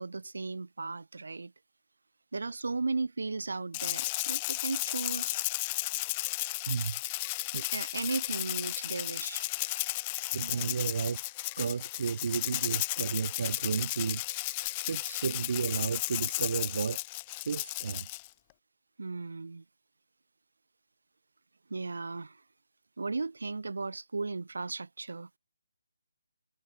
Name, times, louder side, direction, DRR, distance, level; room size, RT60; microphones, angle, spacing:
voice 1, 0.0-1.5 2.3-5.4 7.7-9.4 19.0-19.6 21.7-22.4 23.0-25.3, right 3 dB, 60° right, 5.2 m, -36 dB
Rattle (instrument), 3.7-18.3, left 21 dB, 10° left, 0.5 m, -34 dB
voice 2, 6.7-7.0 7.5-7.6 10.3-11.2 11.6-14.2 14.9-17.0 17.5-18.1, right 6 dB, 30° right, 2.6 m, -32 dB
hypercardioid pair, 180°, 0 cm